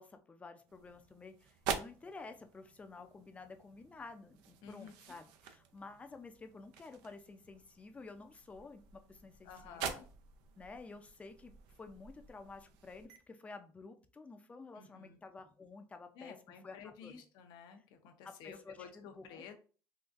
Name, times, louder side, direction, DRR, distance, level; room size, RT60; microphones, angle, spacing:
voice 1, 0.0-10.0 10.6-11.5 11.8-17.2 18.2-19.4, left 3 dB, 15° left, 7 dB, 0.4 m, -52 dB
sound 1, 0.7-13.2, right 7 dB, 90° right, 0.5 m, -47 dB
voice 2, 4.6-4.9 9.4-10.1 14.8-15.2 16.2-19.5, left 7 dB, 75° left, 6 dB, 0.7 m, -52 dB
3.8 x 2.4 x 2.4 m, 0.38 s
cardioid pair, 125°, 8 cm